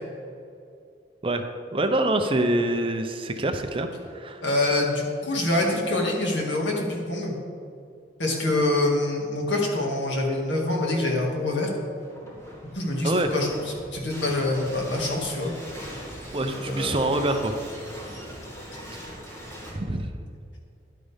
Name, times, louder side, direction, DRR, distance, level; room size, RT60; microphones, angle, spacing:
voice 1, 1.7-4.4 13.0-13.3 16.3-17.5 19.7-20.1, right 1 dB, 30° right, 6 dB, 0.6 m, -25 dB
voice 2, 4.4-7.4 8.2-11.7 12.7-13.5 13.9-15.5 16.7-17.0, left 2 dB, 80° left, -1 dB, 2.0 m, -25 dB
sound 1, 11.9-19.7, equal, 15° left, 1.9 m, -40 dB
11.0 x 9.3 x 3.5 m, 2.5 s
head